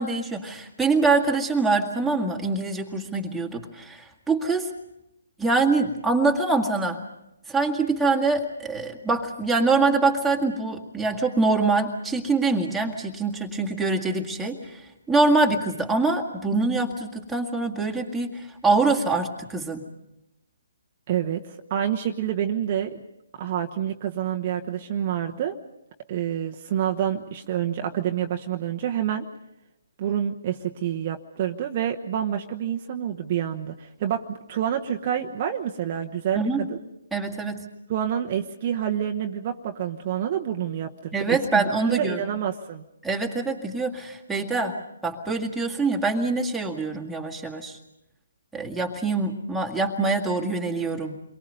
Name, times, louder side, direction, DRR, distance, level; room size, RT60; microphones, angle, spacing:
voice 1, 0.0-4.7 5.4-7.0 7.5-19.9 36.4-36.7 37.1-37.6 41.1-42.2 43.0-44.8 45.0-47.8 48.5-51.2, right 3 dB, 5° right, -1 dB, 2.0 m, -24 dB
voice 2, 21.1-23.0 23.4-25.6 26.1-29.2 30.0-36.8 37.9-42.8, right 9 dB, 35° right, 3 dB, 1.1 m, -28 dB
29.0 x 23.0 x 5.4 m, 0.86 s
figure-of-eight pair, 145°, 0 cm